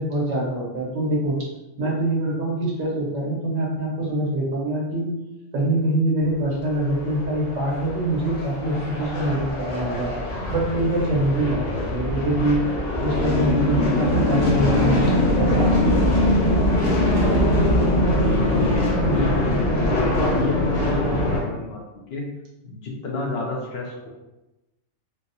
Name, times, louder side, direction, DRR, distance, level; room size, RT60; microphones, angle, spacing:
voice 1, 0.0-1.4 1.8-5.1 5.5-10.1 10.5-12.6 13.0-16.0, right 1 dB, 80° right, -3 dB, 1.4 m, -24 dB
sound 1, 6.6-21.4, left 1 dB, 85° left, 1.3 m, -22 dB
voice 2, 15.4-16.0 19.1-21.8 22.1-22.3 22.6-24.1, left 3 dB, 65° left, -1 dB, 0.7 m, -29 dB
4.3 x 2.0 x 2.7 m, 1.0 s
omnidirectional pair, 1.3 m